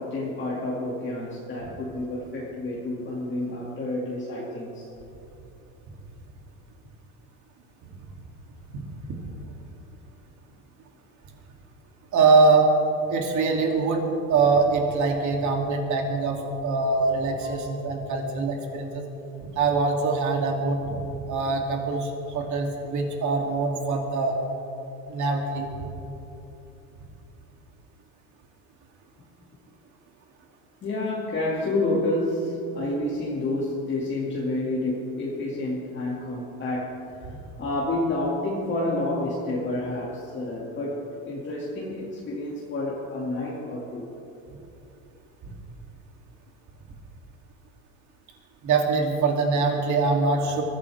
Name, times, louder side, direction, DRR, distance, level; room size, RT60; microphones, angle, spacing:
voice 1, 0.0-4.9 17.4-17.8 30.8-37.3 37.6-44.1, left 2 dB, 25° left, -5 dB, 2.4 m, -29 dB
voice 2, 8.7-9.2 12.1-12.7 13.1-14.0 14.3-19.0 19.5-21.0 21.3-24.3 25.1-25.7 37.3-37.4 45.4-45.5 48.6-50.6, right 4 dB, 45° right, 1 dB, 3.0 m, -23 dB
23.5 x 14.5 x 3.6 m, 2.9 s
supercardioid pair, 125°, 41 cm